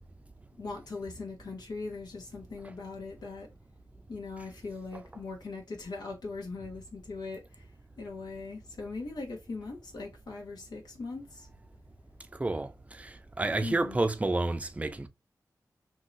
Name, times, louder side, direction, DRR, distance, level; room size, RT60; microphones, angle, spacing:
voice 1, 0.6-3.5 4.1-7.7 8.0-11.5 13.6-14.0, left 3 dB, 90° left, 1.3 m, -40 dB
voice 2, 12.4-12.7 13.0-15.1, right 2 dB, 20° right, 0.4 m, -30 dB
3.7 x 2.8 x 2.6 m
wide cardioid pair, 90°, 7 cm